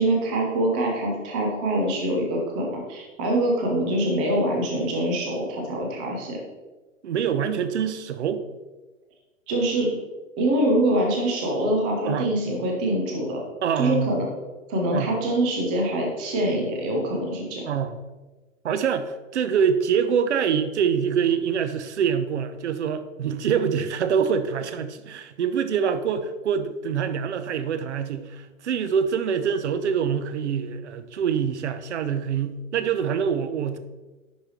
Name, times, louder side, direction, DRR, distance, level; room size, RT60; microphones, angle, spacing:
voice 1, 0.0-6.4 9.5-9.9 10.4-13.4 13.8-14.2 14.7-17.7, right 1 dB, 10° right, 1 dB, 0.3 m, -24 dB
voice 2, 7.0-8.4 12.0-12.3 13.6-14.3 14.9-15.1 17.7-18.0 18.6-33.8, right 7 dB, 60° right, 12 dB, 0.7 m, -25 dB
10.5 x 4.7 x 3.0 m, 1.2 s
figure-of-eight pair, 120°, 39 cm